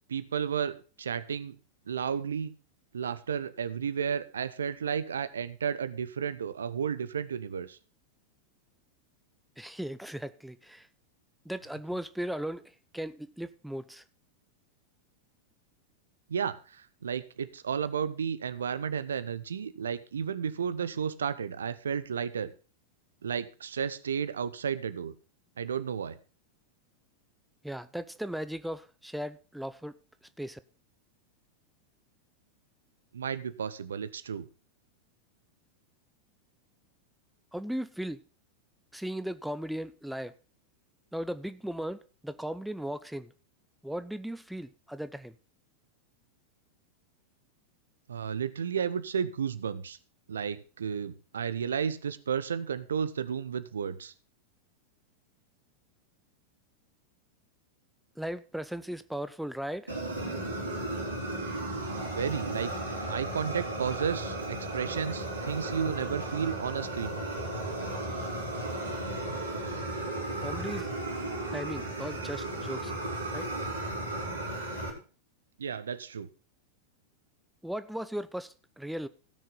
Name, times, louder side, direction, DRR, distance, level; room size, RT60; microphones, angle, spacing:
voice 1, 0.1-1.6 1.9-2.5 2.9-7.8 16.3-22.5 23.2-25.1 25.6-26.2 33.1-34.5 48.1-50.0 50.3-54.1 62.2-62.7 63.1-67.2 75.6-76.3, right 7 dB, 70° right, 0.6 m, -33 dB
voice 2, 9.6-10.9 11.4-14.0 27.6-30.0 30.4-30.6 37.5-38.2 38.9-40.3 41.1-43.3 43.8-45.3 58.2-59.9 70.4-70.9 71.5-72.9 73.3-73.5 77.6-79.1, equal, ahead, 0.6 m, -37 dB
Fire, 59.9-74.9, right 1 dB, 85° right, 3.5 m, -35 dB
17.0 x 6.5 x 4.0 m
figure-of-eight pair, 90°, 0 cm